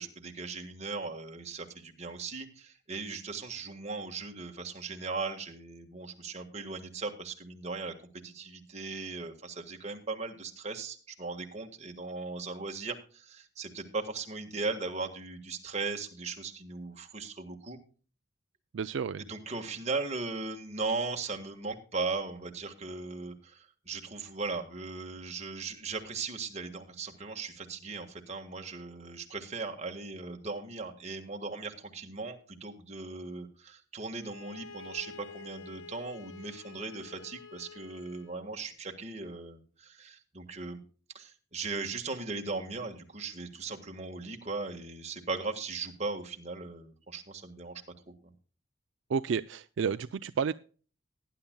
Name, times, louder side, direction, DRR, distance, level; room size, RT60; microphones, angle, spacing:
voice 1, 0.0-7.9 8.2-17.8 19.2-40.8 41.1-48.1, right 3 dB, 35° right, 3 dB, 1.5 m, -38 dB
voice 2, 18.7-19.2 49.1-50.5, right 6 dB, 70° right, 12 dB, 0.4 m, -31 dB
Bowed string instrument, 34.2-38.4, left 5 dB, 90° left, 1.1 m, -49 dB
18.5 x 10.5 x 2.2 m, 0.39 s
head